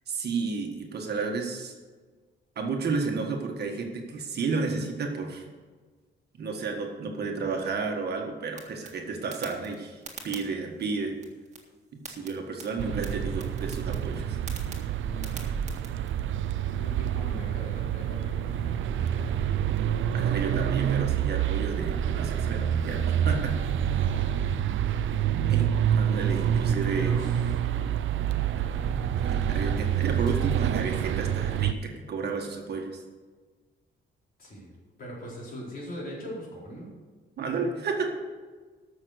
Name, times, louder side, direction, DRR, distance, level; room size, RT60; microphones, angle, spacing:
voice 1, 0.1-1.7 2.6-5.5 6.4-11.2 11.9-14.4 20.1-23.5 25.5-25.7 26.0-27.2 29.2-33.0 37.4-38.2, right 4 dB, 55° right, 2 dB, 1.6 m, -32 dB
sound 1, 8.5-16.1, right 4 dB, 35° right, 1.9 m, -47 dB
sound 2, 12.8-31.7, right 9 dB, 80° right, 0.6 m, -27 dB
voice 2, 15.0-15.7 16.6-19.4 23.8-25.4 27.1-27.6 34.4-34.7 35.0-36.9, equal, 45° left, -5 dB, 4.4 m, -42 dB
sound 3, 26.2-31.1, left 1 dB, 5° left, 0.5 m, -46 dB
14.0 x 6.3 x 6.5 m, 1.4 s
wide cardioid pair, 175°, 20 cm